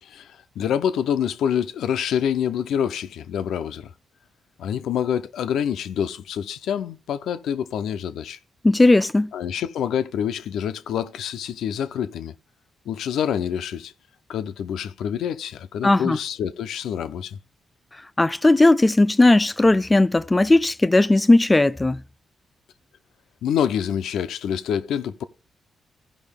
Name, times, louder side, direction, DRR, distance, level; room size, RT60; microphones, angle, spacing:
voice 1, 0.0-3.9 4.6-8.4 9.3-12.3 12.9-13.9 14.3-17.4 23.4-25.2, left 8 dB, 85° left, 0.5 m, -26 dB
voice 2, 8.6-9.3 15.8-16.2 18.2-22.0, left 2 dB, 20° left, 0.4 m, -17 dB
15.5 x 5.3 x 3.5 m
cardioid pair, 70°, 0 cm